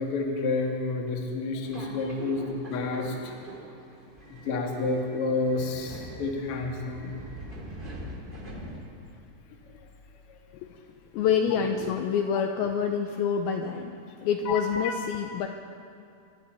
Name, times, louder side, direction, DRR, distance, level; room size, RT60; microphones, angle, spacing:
voice 1, 0.0-3.1 4.3-7.1 14.4-15.0, left 3 dB, 55° left, 1 dB, 1.6 m, -29 dB
Subway metro underground, 1.6-9.2, right 1 dB, 20° right, 1.3 m, -43 dB
voice 2, 11.1-13.9 14.2-15.5, left 7 dB, 80° left, 4 dB, 2.2 m, -27 dB
26.0 x 11.5 x 4.5 m, 2.4 s
omnidirectional pair, 4.9 m